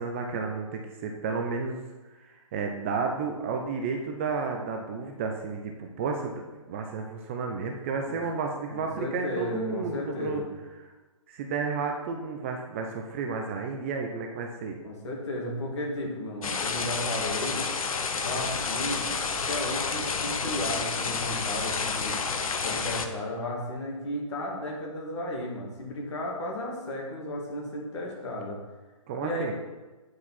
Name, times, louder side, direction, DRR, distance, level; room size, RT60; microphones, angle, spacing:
voice 1, 0.0-1.8 2.3-10.4 10.8-10.9 11.3-14.8 29.1-29.5, right 4 dB, 20° right, 2 dB, 0.5 m, -32 dB
voice 2, 8.7-10.5 14.8-17.6 18.2-22.2 22.6-28.6 29.2-29.5, left 1 dB, 55° left, -2 dB, 2.4 m, -34 dB
sound 1, 16.4-23.1, left 5 dB, 75° left, 0.9 m, -30 dB
9.1 x 4.8 x 4.2 m, 1.2 s
hypercardioid pair, 160°, 18 cm